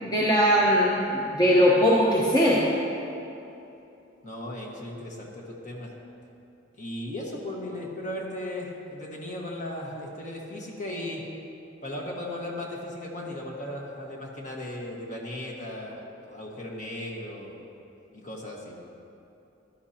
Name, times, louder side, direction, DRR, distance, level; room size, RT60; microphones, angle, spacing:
voice 1, 0.0-2.6, equal, 20° left, -5 dB, 1.0 m, -20 dB
voice 2, 4.2-6.0 6.8-11.2 11.8-16.0 16.3-17.6 18.1-18.8, left 1 dB, 40° left, -2 dB, 1.6 m, -36 dB
15.0 x 11.5 x 2.9 m, 2.8 s
head